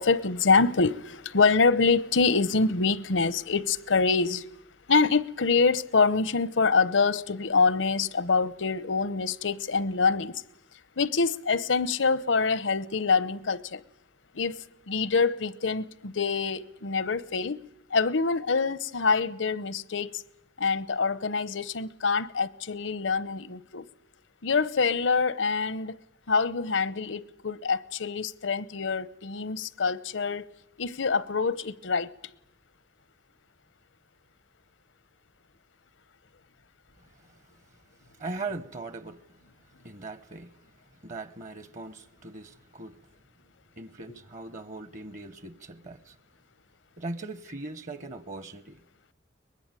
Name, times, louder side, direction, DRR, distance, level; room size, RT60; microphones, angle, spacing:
voice 1, 0.0-4.4 4.9-10.4 11.0-13.8 14.3-17.6 17.9-20.2 20.6-23.8 24.4-26.0 26.3-30.5 30.8-32.1, left 4 dB, 85° left, 0.8 m, -25 dB
voice 2, 38.2-39.2 39.8-40.5 41.0-43.0 43.8-46.1 47.0-48.8, right 3 dB, 40° right, 0.8 m, -39 dB
23.0 x 20.5 x 9.0 m
head